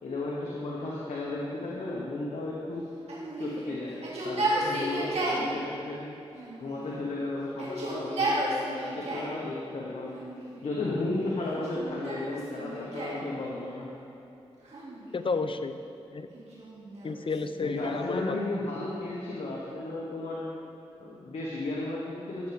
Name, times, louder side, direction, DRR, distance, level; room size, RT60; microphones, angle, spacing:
voice 1, 0.0-2.9 3.4-4.0 4.2-6.1 6.6-10.2 10.6-13.9 17.6-20.4 21.0-22.5, left 2 dB, 80° left, -5 dB, 1.4 m, -34 dB
Yell, 3.1-5.5 6.4-7.1 7.5-9.4 10.1-10.8 11.5-13.3 14.6-15.5 16.3-18.1, right 1 dB, 75° right, 2.3 m, -33 dB
voice 2, 15.1-15.8 16.1-16.3 17.0-18.4, left 4 dB, 50° left, 10 dB, 0.6 m, -31 dB
15.0 x 7.2 x 3.5 m, 2.9 s
cardioid pair, 55°, 11 cm